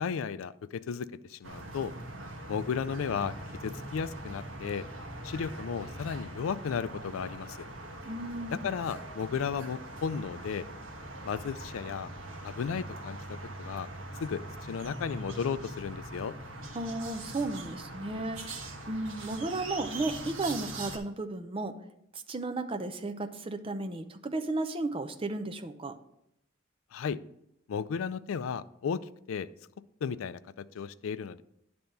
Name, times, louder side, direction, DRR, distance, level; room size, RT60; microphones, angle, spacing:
voice 1, 0.0-1.9 2.5-3.4 3.6-4.9 5.2-7.6 8.5-10.7 11.2-12.1 12.4-13.9 14.2-16.3 26.9-27.2 27.7-29.5 30.0-31.4, left 6 dB, 80° left, 15 dB, 0.4 m, -34 dB
sound 1, 1.4-21.0, right 1 dB, 85° right, 1.2 m, -42 dB
voice 2, 8.0-8.7 16.7-21.7 22.1-25.9, right 2 dB, 25° right, 7 dB, 0.6 m, -34 dB
10.0 x 3.4 x 5.3 m, 0.79 s
head